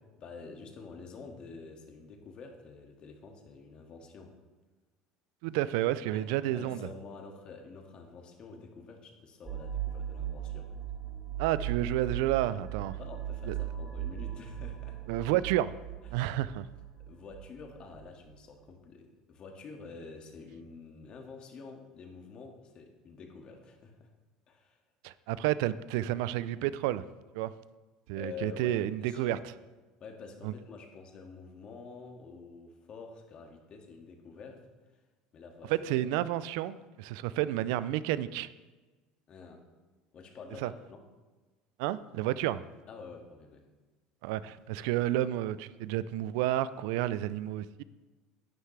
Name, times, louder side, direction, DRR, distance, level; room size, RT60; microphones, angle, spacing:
voice 1, 0.2-4.4 6.1-6.2 6.5-10.7 13.0-15.1 16.0-16.3 17.1-24.1 24.5-24.8 28.1-29.4 30.0-34.7 35.3-35.8 39.3-39.6 40.1-41.0 42.9-43.6, left 4 dB, 45° left, 3 dB, 1.9 m, -48 dB
voice 2, 5.4-6.9 11.4-13.0 13.5-13.6 15.1-15.7 16.1-16.7 25.0-27.1 27.3-27.5 28.1-29.4 30.4-30.5 35.7-38.5 40.6-40.7 41.8-42.6 44.2-47.8, right 14 dB, 75° right, 16 dB, 0.4 m, -30 dB
sound 1, 9.4-18.1, right 10 dB, 35° right, 3.5 m, -38 dB
11.5 x 9.7 x 3.3 m, 1.3 s
hypercardioid pair, 85°, 2 cm